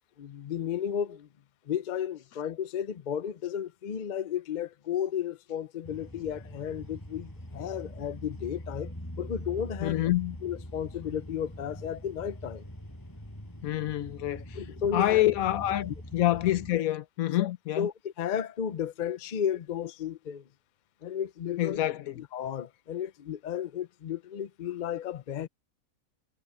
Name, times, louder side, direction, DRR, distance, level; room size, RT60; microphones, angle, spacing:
voice 1, 0.2-1.3 1.7-10.0 10.4-12.6 14.5-15.5 17.4-20.4 21.0-21.8 22.2-25.5, left 9 dB, 45° left, 0.6 m, -33 dB
sound 1, 5.8-16.7, equal, 15° left, 7.0 m, -43 dB
voice 2, 9.8-10.4 13.6-14.4 14.9-17.9 21.6-22.1, left 14 dB, 80° left, 1.2 m, -27 dB
omnidirectional pair, 1.5 m